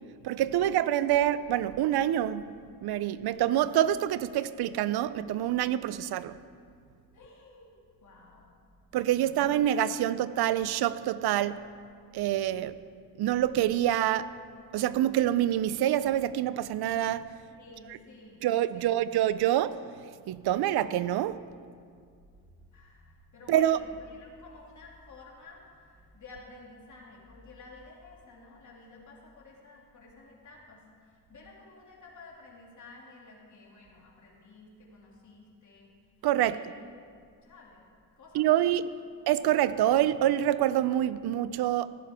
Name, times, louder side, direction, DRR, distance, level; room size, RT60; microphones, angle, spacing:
voice 1, 0.2-2.5 2.8-6.4 8.9-11.6 12.1-12.8 13.2-14.3 14.7-17.3 18.4-19.8 20.3-21.4 23.5-23.8 36.2-36.6 38.3-38.9 39.3-41.9, right 12 dB, 70° right, 0.5 m, -26 dB
voice 2, 5.7-6.1 7.1-8.5 8.8-8.9 9.2-9.4 17.6-18.9 19.2-19.3 22.7-35.9 36.4-36.8 37.0-37.8 38.2-38.9, left 3 dB, 45° left, 2.7 m, -52 dB
15.0 x 11.0 x 3.6 m
cardioid pair, 90°, 40 cm